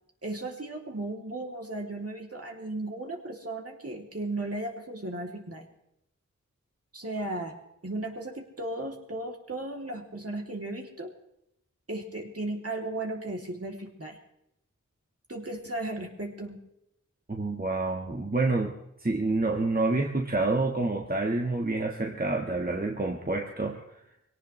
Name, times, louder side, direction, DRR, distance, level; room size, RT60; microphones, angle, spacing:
voice 1, 0.2-5.7 6.9-7.6 7.8-11.1 11.9-14.2 15.3-16.6, right 2 dB, 50° right, 1 dB, 2.9 m, -35 dB
voice 2, 17.3-18.7 19.0-23.8, right 2 dB, 30° right, 1 dB, 1.6 m, -28 dB
22.5 x 17.5 x 3.2 m, 0.82 s
wide cardioid pair, 40°, 31 cm